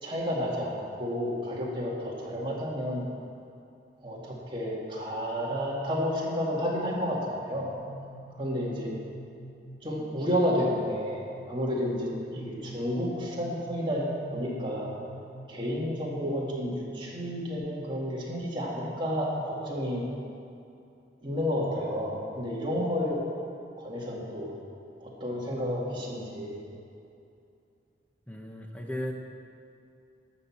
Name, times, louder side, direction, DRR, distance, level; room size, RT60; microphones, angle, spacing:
voice 1, 0.0-3.0 4.0-7.2 7.4-7.7 8.4-8.9 9.8-14.9 15.5-20.1 21.2-23.2 23.8-24.6 25.0-26.6, equal, 25° right, -4 dB, 2.0 m, -31 dB
sound 1, 7.7-17.6, right 1 dB, 55° left, 2.7 m, -48 dB
voice 2, 28.3-29.1, equal, 10° left, 2 dB, 0.9 m, -35 dB
12.0 x 6.2 x 7.3 m, 2.6 s
head